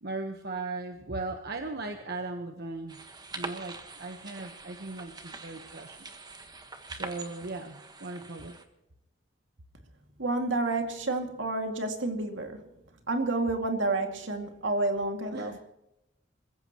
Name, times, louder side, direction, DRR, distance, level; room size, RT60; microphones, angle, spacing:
voice 1, 0.0-3.0 3.3-6.1 6.9-8.6 15.3-15.6, right 3 dB, 55° right, 1.2 m, -38 dB
sound 1, 2.9-8.7, right 3 dB, 20° right, 1.4 m, -44 dB
voice 2, 10.2-12.6 13.1-15.6, right 2 dB, 75° right, 2.4 m, -29 dB
27.0 x 15.5 x 3.1 m
head